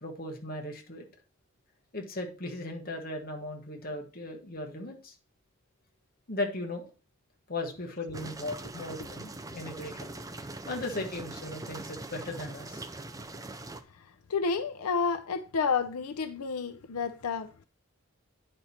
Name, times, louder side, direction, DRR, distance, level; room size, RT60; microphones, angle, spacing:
voice 1, 0.0-1.1 1.9-5.1 6.3-6.9 7.5-10.2 10.7-12.8, left 2 dB, 40° left, 1.3 m, -37 dB
sound 1, 8.1-13.8, right 2 dB, 15° right, 0.4 m, -42 dB
voice 2, 14.3-17.6, left 5 dB, 90° left, 0.6 m, -30 dB
8.9 x 4.5 x 4.3 m
head